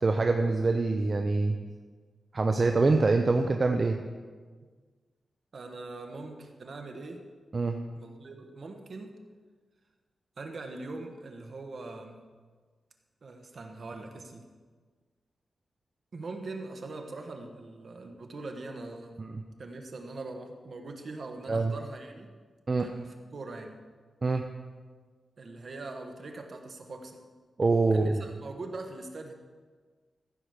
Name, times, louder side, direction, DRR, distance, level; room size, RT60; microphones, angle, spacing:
voice 1, 0.0-1.6 2.3-4.0 7.5-7.8 19.2-19.4 21.5-21.7 22.7-22.9 24.2-24.4 27.6-28.2, right 3 dB, 35° right, 5 dB, 0.6 m, -25 dB
voice 2, 5.5-7.2 7.9-9.1 10.4-12.2 13.2-14.5 16.1-19.2 19.6-22.3 22.8-23.8 25.4-27.2 27.8-29.3, right 3 dB, 50° right, 4 dB, 1.3 m, -42 dB
14.5 x 5.2 x 6.5 m, 1.5 s
wide cardioid pair, 125°, 0 cm